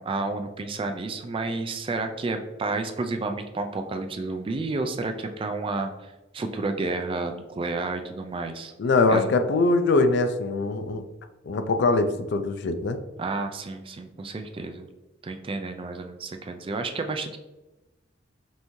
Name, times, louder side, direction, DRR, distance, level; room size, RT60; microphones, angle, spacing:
voice 1, 0.0-8.7 9.1-9.3 13.2-14.9 15.2-17.4, right 3 dB, 30° right, 6 dB, 0.3 m, -31 dB
voice 2, 8.8-11.0 11.5-13.0, left 3 dB, 60° left, 8 dB, 0.4 m, -22 dB
5.4 x 2.7 x 3.0 m, 1.0 s
head